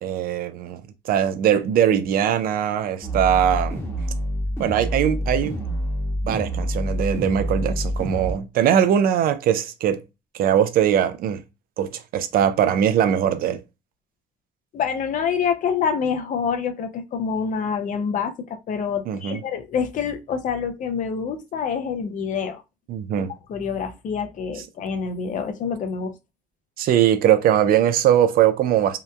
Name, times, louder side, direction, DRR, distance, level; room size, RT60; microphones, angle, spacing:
voice 1, 0.0-3.8 4.6-5.6 6.2-10.0 10.3-11.4 11.8-13.6 19.1-19.4 22.9-23.3 26.8-29.0, right 10 dB, 60° right, 0.4 m, -21 dB
sound 1, 3.0-8.3, equal, 15° left, 0.9 m, -27 dB
voice 2, 14.7-22.6 23.5-26.1, left 6 dB, 50° left, 0.5 m, -26 dB
2.8 x 2.1 x 2.2 m
cardioid pair, 110°, 17 cm